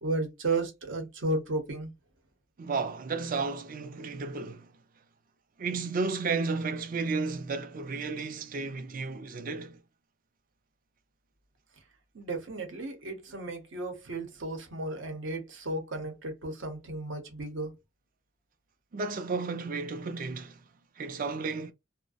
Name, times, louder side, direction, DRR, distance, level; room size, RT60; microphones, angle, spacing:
voice 1, 0.0-1.9 12.1-17.7, right 2 dB, 65° right, 0.8 m, -34 dB
voice 2, 2.6-4.7 5.6-9.8 18.9-20.6 21.0-21.7, right 4 dB, 45° right, 0.4 m, -33 dB
2.4 x 2.1 x 2.5 m
head